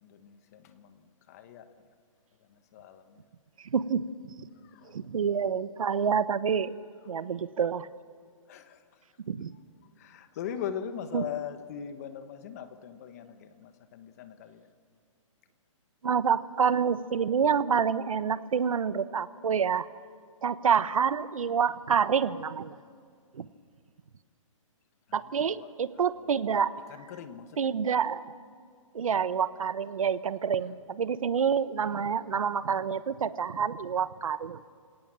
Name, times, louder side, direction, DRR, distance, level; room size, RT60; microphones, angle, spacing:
voice 1, 0.0-1.7 2.5-3.2 4.6-5.1 7.0-7.1 8.5-8.8 10.0-14.7 25.1-25.7 26.0-26.4 26.9-27.7, left 9 dB, 30° left, 10 dB, 1.3 m, -41 dB
voice 2, 3.7-4.5 4.9-6.7 7.1-7.9 9.3-9.5 11.1-11.2 16.0-19.9 20.4-22.8 23.3-23.5 25.1-26.7 27.6-28.3 28.9-34.7, right 7 dB, 90° right, 15 dB, 1.1 m, -27 dB
28.0 x 18.0 x 7.6 m, 2.1 s
hypercardioid pair, 170°, 17 cm